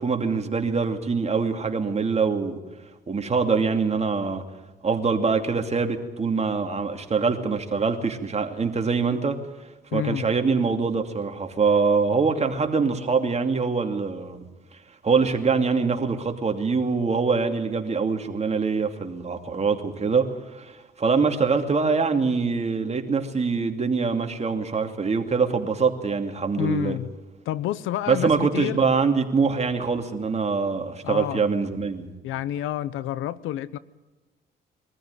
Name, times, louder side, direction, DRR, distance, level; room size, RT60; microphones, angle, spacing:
voice 1, 0.0-2.6 3.1-4.4 4.8-9.4 9.9-14.4 15.0-27.0 28.1-32.1, right 5 dB, 35° right, 4 dB, 2.7 m, -24 dB
voice 2, 9.9-10.3 26.6-27.1 27.5-28.8 31.0-31.5 32.2-33.8, left 12 dB, 90° left, 18 dB, 0.8 m, -29 dB
23.0 x 14.5 x 9.7 m, 1.2 s
cardioid pair, 90°, 20 cm